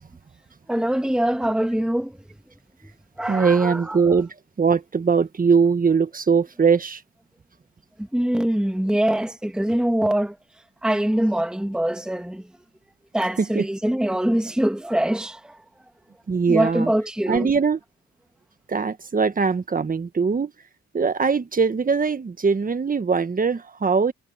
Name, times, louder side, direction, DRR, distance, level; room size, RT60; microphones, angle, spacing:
voice 1, 0.7-2.1 3.2-4.0 8.1-10.3 10.8-12.4 13.1-15.5 16.5-17.5, right 1 dB, 5° right, 1.5 m, -23 dB
voice 2, 3.3-7.0 13.4-13.7 16.3-16.9 17.3-17.8 18.7-20.5 20.9-24.1, right 5 dB, 30° right, 1.4 m, -21 dB
cardioid pair, 90°, 30 cm